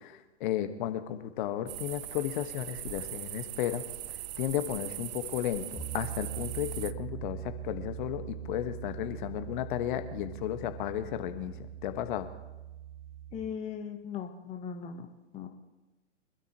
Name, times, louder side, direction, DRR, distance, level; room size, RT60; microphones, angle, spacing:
voice 1, 0.0-3.8 4.4-12.3, left 12 dB, 40° left, 9 dB, 1.4 m, -34 dB
sound 1, 1.7-6.9, right 14 dB, 35° right, 0.5 m, -40 dB
Piano, 5.8-13.4, right 10 dB, ahead, 1.6 m, -42 dB
voice 2, 13.3-15.1 15.3-15.5, left 7 dB, 20° left, 5 dB, 1.1 m, -38 dB
25.5 x 12.5 x 3.0 m, 1.1 s
figure-of-eight pair, 115°, 36 cm